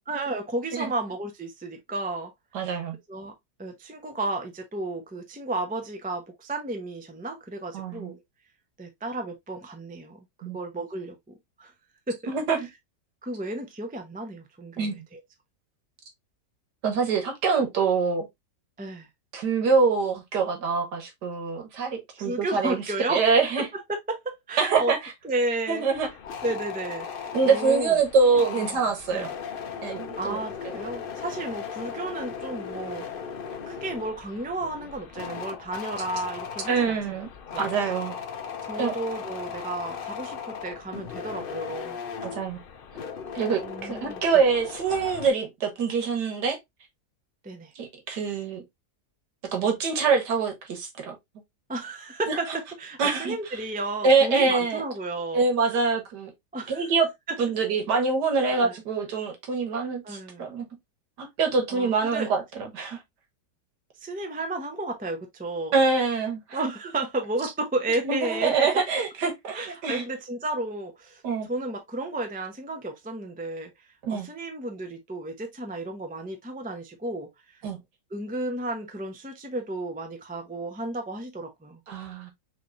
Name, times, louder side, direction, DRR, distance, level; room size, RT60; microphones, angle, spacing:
voice 1, 0.1-2.3 2.6-2.7 3.1-3.3 3.6-8.2 8.8-10.2 10.5-11.1 11.6-11.7 12.1-12.3 13.2-15.2 18.8-19.1 22.2-23.2 23.6-24.9 25.2-25.8 26.4-28.0 28.3-28.8 29.1-29.3 30.2-33.0 33.7-37.3 37.5-37.7 38.6-42.0 43.6-44.4 47.4-47.7 51.7-55.4 56.5-56.8 58.4-58.8 60.0-60.5 61.7-62.3 64.0-65.7 66.5-68.8 69.5-71.2 71.5-73.7 74.1-77.6 78.1-81.8, right 2 dB, 10° right, 0.4 m, -33 dB
voice 2, 2.5-3.0 7.7-8.1 10.4-10.6 12.3-12.6 14.8-15.0 16.8-18.3 19.3-22.8 23.1-23.7 24.6-25.1 25.7-26.1 27.3-29.3 29.8-30.4 36.7-37.3 37.6-38.1 38.8-38.9 42.2-42.6 43.4-46.6 47.8-48.6 49.5-51.2 52.3-52.4 53.0-53.3 54.0-54.8 55.3-56.3 56.7-57.1 57.4-60.7 61.2-63.0 65.7-66.6 68.0-70.0 71.2-71.5 74.0-74.3 77.6-77.8 81.9-82.3, right 4 dB, 70° right, 1.9 m, -25 dB
sound 1, 25.9-45.3, left 6 dB, 85° left, 0.4 m, -37 dB
5.9 x 3.2 x 2.5 m
omnidirectional pair, 1.9 m